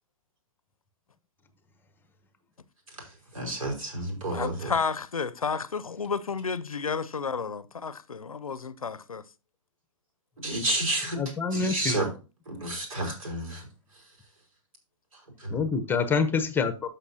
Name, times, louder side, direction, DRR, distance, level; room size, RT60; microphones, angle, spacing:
voice 1, 3.3-4.7 10.4-11.2 11.5-12.1 12.5-13.6 15.4-15.6, right 1 dB, 75° right, 5.1 m, -30 dB
voice 2, 4.3-9.2, left 5 dB, 90° left, 0.7 m, -31 dB
voice 3, 11.2-12.0 15.5-16.9, left 5 dB, 10° left, 0.9 m, -26 dB
13.0 x 5.6 x 2.8 m
hypercardioid pair, 120°, 18 cm